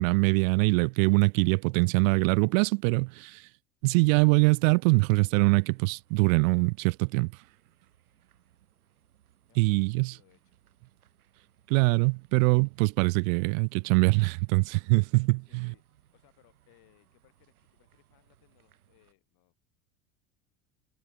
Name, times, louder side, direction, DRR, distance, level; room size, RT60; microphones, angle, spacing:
voice 1, 0.0-3.4 3.8-7.3 9.6-10.1 11.7-15.7, right 30 dB, 65° right, 0.6 m, -23 dB
sound 1, 3.8-19.1, right 11 dB, 85° right, 7.9 m, -66 dB
voice 2, 9.5-10.6 15.4-15.8 16.1-19.7, left 21 dB, 60° left, 5.8 m, -66 dB
hypercardioid pair, 85°, 42 cm